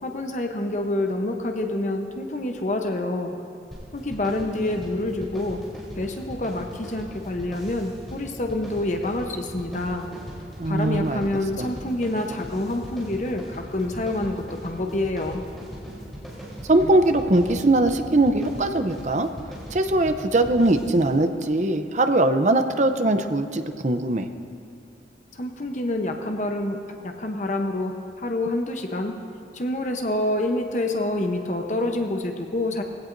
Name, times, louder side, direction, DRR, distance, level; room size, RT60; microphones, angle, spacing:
voice 1, 0.0-3.3 3.9-5.6 6.0-10.1 10.6-15.4 25.3-29.2 29.5-32.8, left 1 dB, 40° left, 4 dB, 0.9 m, -27 dB
sound 1, 3.7-21.2, equal, ahead, 3.7 m, -39 dB
voice 2, 10.6-11.3 11.6-11.7 16.7-19.3 19.7-24.3, right 2 dB, 40° right, 8 dB, 0.7 m, -21 dB
20.5 x 16.5 x 2.7 m, 2.7 s
head